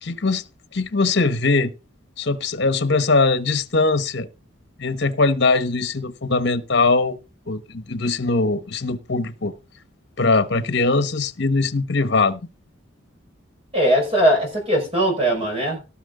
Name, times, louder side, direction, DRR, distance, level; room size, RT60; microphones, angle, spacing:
voice 1, 0.0-0.4 0.7-1.7 2.2-4.3 4.8-7.2 7.5-9.5 10.2-12.4, left 3 dB, 60° left, 1.1 m, -21 dB
voice 2, 13.7-15.9, right 1 dB, 30° right, 4.9 m, -20 dB
18.5 x 6.2 x 3.8 m
head